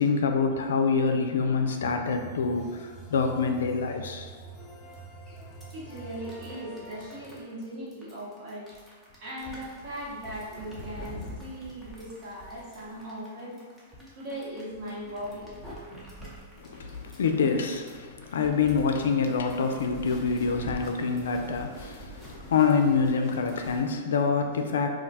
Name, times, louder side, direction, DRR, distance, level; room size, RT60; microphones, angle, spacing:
voice 1, 0.0-4.3 16.6-24.9, left 5 dB, 80° left, 5 dB, 0.3 m, -26 dB
sound 1, 1.8-7.4, right 3 dB, 30° left, 0.6 m, -45 dB
sound 2, 4.9-5.0 5.3-23.9, equal, 5° right, 0.8 m, -46 dB
voice 2, 5.7-8.7 9.2-13.7 14.1-15.6, equal, 50° right, -6 dB, 1.2 m, -39 dB
2.4 x 2.2 x 4.0 m, 1.5 s
hypercardioid pair, 120°, 0 cm